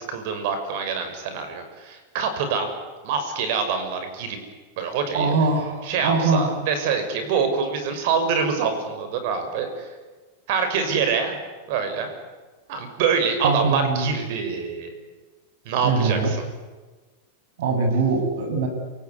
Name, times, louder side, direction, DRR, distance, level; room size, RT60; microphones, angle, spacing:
voice 1, 0.0-2.7 3.0-4.4 4.8-5.3 5.8-9.9 10.5-11.4 11.7-12.1 12.7-14.9 15.6-16.4, right 5 dB, 60° right, 7 dB, 6.4 m, -25 dB
voice 2, 5.1-6.6 13.4-14.2 15.8-16.3 17.6-18.7, right 4 dB, 75° right, 5 dB, 7.8 m, -22 dB
28.5 x 18.5 x 9.8 m, 1.3 s
supercardioid pair, 145°, 0 cm